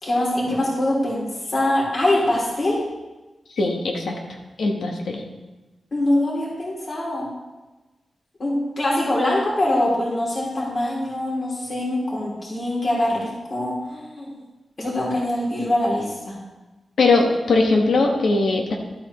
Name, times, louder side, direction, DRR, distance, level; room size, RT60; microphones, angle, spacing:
voice 1, 0.0-2.8 5.9-7.3 8.4-14.3 14.8-16.4, left 1 dB, 45° left, -5 dB, 3.1 m, -23 dB
voice 2, 3.6-4.2 4.6-5.2 17.0-18.7, left 3 dB, 90° left, 1 dB, 1.3 m, -20 dB
12.5 x 8.3 x 3.2 m, 1.1 s
wide cardioid pair, 140°, 0 cm